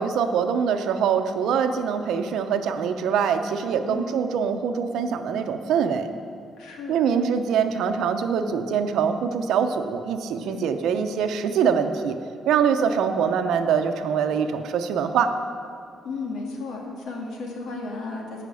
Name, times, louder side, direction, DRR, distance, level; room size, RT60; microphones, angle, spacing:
voice 1, 0.0-6.1 6.9-12.2 12.5-15.3, right 7 dB, 85° right, 7 dB, 0.8 m, -24 dB
voice 2, 6.6-7.1 10.4-10.6 16.0-18.4, left 3 dB, 90° left, 0 dB, 2.2 m, -34 dB
15.0 x 6.0 x 6.4 m, 2.5 s
cardioid pair, 145°, 0 cm